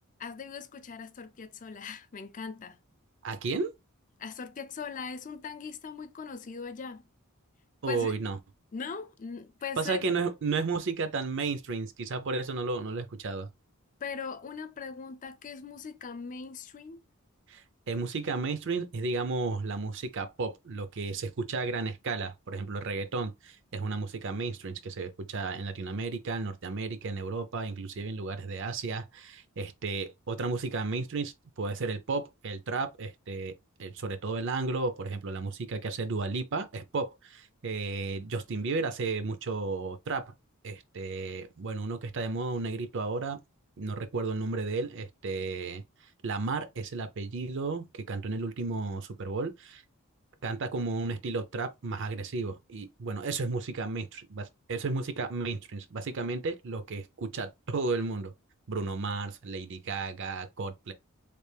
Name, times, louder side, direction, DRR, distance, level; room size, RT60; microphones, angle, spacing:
voice 1, 0.2-2.8 4.2-7.0 7.9-8.1 8.7-10.0 14.0-17.0, left 5 dB, 35° left, 0.4 m, -40 dB
voice 2, 3.2-3.7 7.8-8.4 9.8-13.5 17.5-33.5 33.8-40.3 40.6-43.4 43.8-45.8 46.2-49.8 50.4-58.3 58.7-60.9, right 3 dB, 60° right, 0.5 m, -33 dB
3.3 x 2.4 x 3.2 m
head